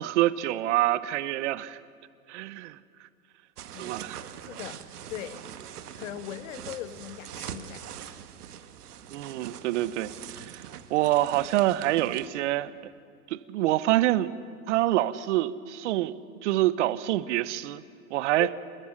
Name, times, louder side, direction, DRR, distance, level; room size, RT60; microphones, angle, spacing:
voice 1, 0.0-1.8 2.3-2.8 3.8-4.2 9.1-10.6 10.9-12.7 13.3-14.3 14.7-16.2 16.4-17.8 18.1-18.5, right 15 dB, 50° right, 16 dB, 0.9 m, -26 dB
Backpack Rummaging, 3.6-12.3, right 9 dB, 75° right, 1.7 m, -43 dB
voice 2, 4.4-4.8 5.1-5.4 6.0-7.9 18.4-18.5, left 12 dB, 55° left, 12 dB, 1.4 m, -39 dB
27.5 x 21.5 x 6.4 m, 2.4 s
hypercardioid pair, 140°, 46 cm